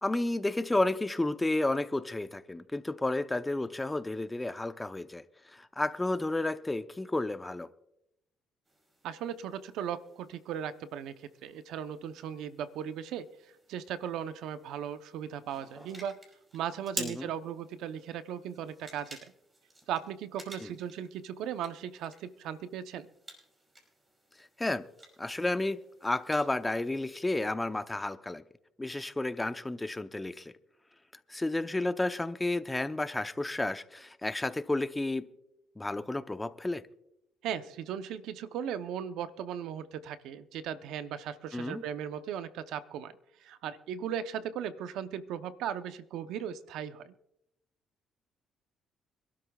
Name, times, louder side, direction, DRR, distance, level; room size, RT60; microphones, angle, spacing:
voice 1, 0.0-7.7 17.0-17.3 20.6-20.7 24.4-24.9 25.2-28.4 28.8-30.5 31.3-35.3 35.8-36.8 41.5-41.8, left 2 dB, 15° left, 0.7 m, -32 dB
sound 1, 8.7-27.1, right 2 dB, 25° right, 5.5 m, -50 dB
voice 2, 9.0-13.3 13.7-16.2 16.5-19.2 19.9-23.1 37.4-43.1 43.4-47.1, right 9 dB, 80° right, 0.7 m, -37 dB
26.5 x 12.5 x 2.4 m
cardioid pair, 90°, 0 cm